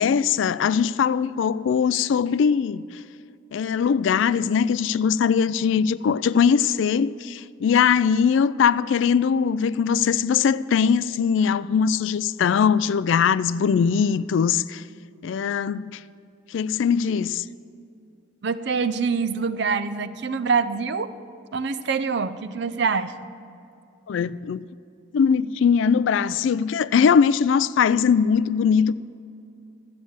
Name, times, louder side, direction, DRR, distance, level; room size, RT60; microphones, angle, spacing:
voice 1, 0.0-2.8 3.5-14.8 15.2-16.0 16.5-17.4 24.1-24.7 25.1-28.9, left 6 dB, 70° left, 0.3 m, -21 dB
voice 2, 18.4-21.1 21.5-23.1, right 5 dB, 55° right, 0.5 m, -25 dB
12.5 x 8.6 x 7.1 m
head